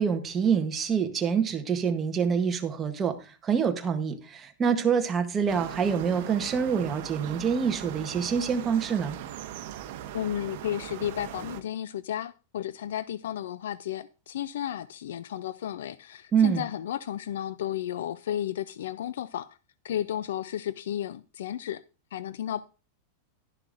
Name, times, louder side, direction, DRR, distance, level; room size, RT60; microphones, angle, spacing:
voice 1, 0.0-9.2 16.3-16.7, right 6 dB, 15° right, 0.9 m, -26 dB
sound 1, 5.5-11.6, right 12 dB, 45° right, 0.8 m, -39 dB
voice 2, 10.1-19.6 19.8-21.8 22.1-22.6, left 11 dB, 90° left, 0.4 m, -33 dB
11.5 x 10.5 x 2.5 m
supercardioid pair, 175°, 0 cm